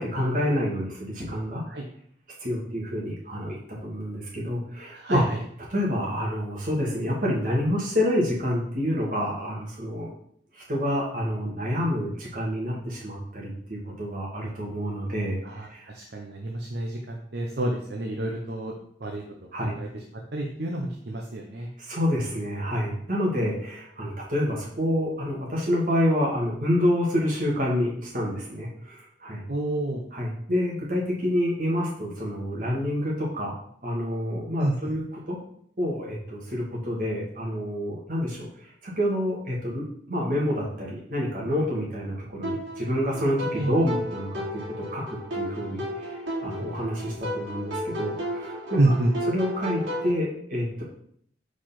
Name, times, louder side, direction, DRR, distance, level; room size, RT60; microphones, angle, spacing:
voice 1, 0.0-1.6 2.4-5.2 5.7-10.1 10.5-15.4 15.7-15.9 19.5-19.8 21.8-29.5 30.1-33.6 33.8-35.4 35.8-48.8 49.3-50.8, equal, 45° right, -4 dB, 2.2 m, -28 dB
voice 2, 4.9-5.4 15.4-18.7 19.0-19.2 19.6-19.9 20.3-21.7 29.5-30.0 34.6-34.7 43.5-43.7 48.8-49.1, right 1 dB, 65° right, 0 dB, 0.8 m, -28 dB
sound 1, 42.4-50.1, equal, 85° right, 2.8 m, -33 dB
4.8 x 4.7 x 5.8 m, 0.65 s
head